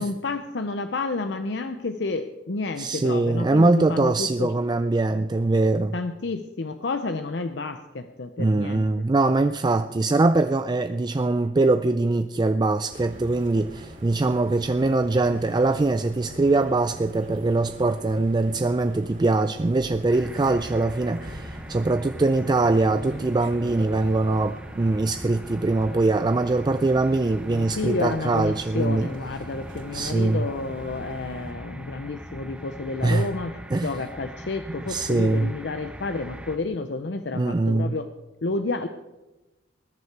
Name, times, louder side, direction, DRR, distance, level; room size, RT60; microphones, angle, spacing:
voice 1, 0.0-4.5 5.9-8.9 27.5-38.1 38.4-38.9, left 3 dB, 70° left, 8 dB, 0.7 m, -30 dB
voice 2, 2.8-5.9 8.4-29.1 29.9-30.4 33.0-33.3 33.7-33.9 34.9-35.5 37.3-38.0, right 2 dB, 25° right, 10 dB, 0.4 m, -22 dB
sound 1, 12.9-31.5, equal, 50° right, 2.7 m, -43 dB
sound 2, 20.1-36.6, equal, 5° right, 0.8 m, -41 dB
20.5 x 9.8 x 4.7 m, 1.1 s
head